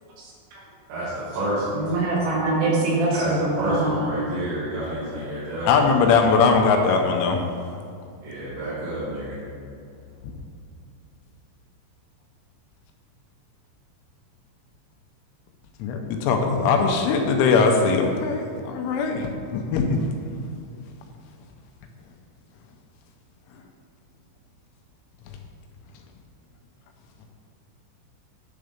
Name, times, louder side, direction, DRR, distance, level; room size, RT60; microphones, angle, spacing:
voice 1, 0.2-0.6 1.7-4.0, right 2 dB, 80° right, -5 dB, 4.3 m, -24 dB
voice 2, 0.9-1.8 3.1-6.1 8.2-9.4, right 1 dB, 65° right, -12 dB, 4.2 m, -29 dB
voice 3, 5.7-7.4 15.8-20.0, left 5 dB, 80° left, 3 dB, 3.1 m, -20 dB
10.5 x 3.9 x 5.1 m, 2.4 s
omnidirectional pair, 5.7 m